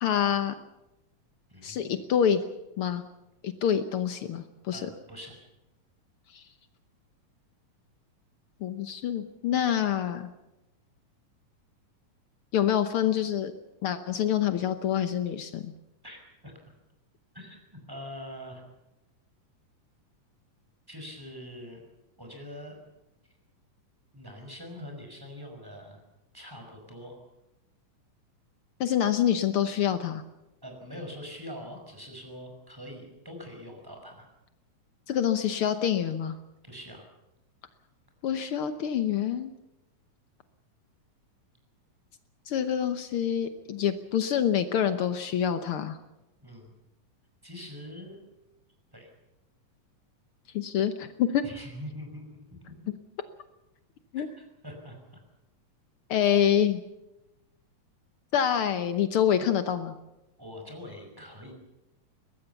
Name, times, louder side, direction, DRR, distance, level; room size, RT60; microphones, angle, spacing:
voice 1, 0.0-0.5 1.6-2.4 2.8-3.0 3.4-4.9 6.3-6.4 8.6-10.3 12.5-13.5 13.8-15.7 28.8-30.2 35.1-36.4 38.2-39.5 42.5-46.0 50.5-51.5 54.1-54.3 56.1-56.8 58.3-59.9, left 9 dB, 90° left, 10 dB, 1.2 m, -26 dB
voice 2, 1.5-1.9 4.7-5.4 16.0-16.5 17.3-18.6 20.9-21.8 22.2-22.8 24.1-26.0 26.3-27.2 30.6-34.3 36.6-37.1 46.4-46.7 47.4-48.2 48.9-49.1 51.4-52.4 54.2-55.2 60.4-61.5, left 1 dB, 5° right, 2 dB, 5.4 m, -43 dB
22.5 x 20.0 x 7.0 m, 0.95 s
omnidirectional pair, 3.9 m